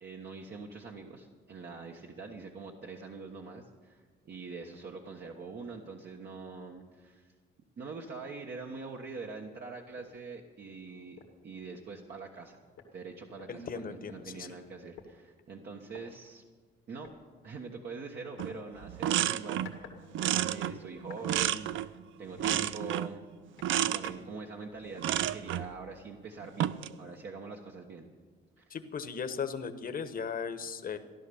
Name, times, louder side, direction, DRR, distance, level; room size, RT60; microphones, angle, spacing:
voice 1, 0.0-7.3 7.8-12.6 12.9-16.4 16.9-17.1 17.4-19.8 20.5-23.2 23.7-28.1 28.6-28.8, right 4 dB, 55° right, 0 dB, 1.3 m, -44 dB
sound 1, 10.0-10.2 10.6-10.7 11.2-11.4 12.4-12.5 12.8-14.2 15.0-15.1 15.9-16.0 17.0-17.2 18.4-18.6 19.3-20.0 20.3-21.3 21.7-21.9 22.4-23.2 23.6-24.4, left 7 dB, 85° left, 2.0 m, -52 dB
voice 2, 13.5-14.5 28.7-31.0, left 6 dB, 45° left, 9 dB, 1.2 m, -37 dB
sound 2, 18.4-18.6 18.8-19.8 20.1-22.0 22.4-23.2 23.6-24.1 25.0-25.7 26.4-26.9, right 11 dB, 75° right, 0.5 m, -30 dB
15.0 x 11.0 x 7.0 m, 1.5 s
cardioid pair, 90°, 20 cm